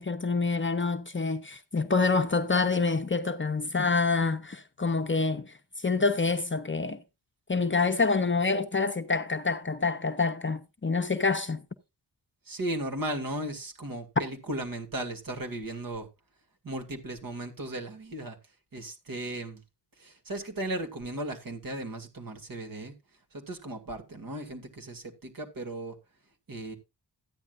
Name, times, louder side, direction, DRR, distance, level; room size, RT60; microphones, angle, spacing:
voice 1, 0.0-5.5 5.8-7.0 7.5-11.6, left 4 dB, 30° left, 0.7 m, -27 dB
voice 2, 12.5-16.1 16.6-18.4 18.7-19.6 20.0-22.9 23.5-25.9 26.5-26.7, right 1 dB, 50° right, 2.3 m, -36 dB
13.0 x 9.9 x 2.5 m
wide cardioid pair, 100°, 42 cm